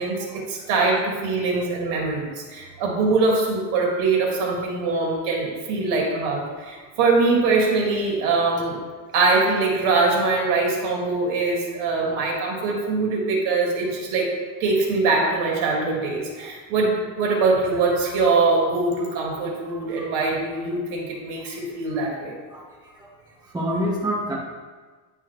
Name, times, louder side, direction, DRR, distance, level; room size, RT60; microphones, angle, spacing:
voice 1, 0.0-8.8 9.1-14.3 14.6-22.3, right 3 dB, 75° right, -1 dB, 2.2 m, -23 dB
voice 2, 19.7-20.0 21.5-21.6 22.5-22.6 22.9-23.1 23.4-24.4, equal, 10° right, -6 dB, 1.4 m, -28 dB
10.0 x 5.7 x 3.2 m, 1.4 s
cardioid pair, 160°, 49 cm